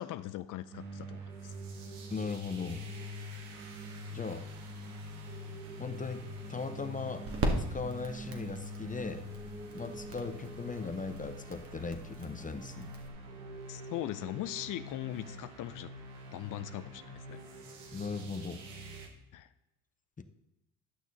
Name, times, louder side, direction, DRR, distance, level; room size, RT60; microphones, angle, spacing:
voice 1, 0.0-1.5 13.7-15.9 16.3-17.4 19.3-19.5, left 13 dB, 55° left, 13 dB, 0.6 m, -40 dB
sound 1, 0.7-19.1, equal, 85° right, 1.5 m, -45 dB
voice 2, 2.1-2.9 4.1-4.5 5.8-6.2 6.5-7.3 7.6-9.3 9.7-12.9 17.9-18.6 20.2-20.3, left 4 dB, 20° left, 9 dB, 0.8 m, -38 dB
sound 2, 5.7-13.1, right 2 dB, 35° right, 1.9 m, -40 dB
11.5 x 6.1 x 4.0 m, 0.93 s
hypercardioid pair, 65°, 37 cm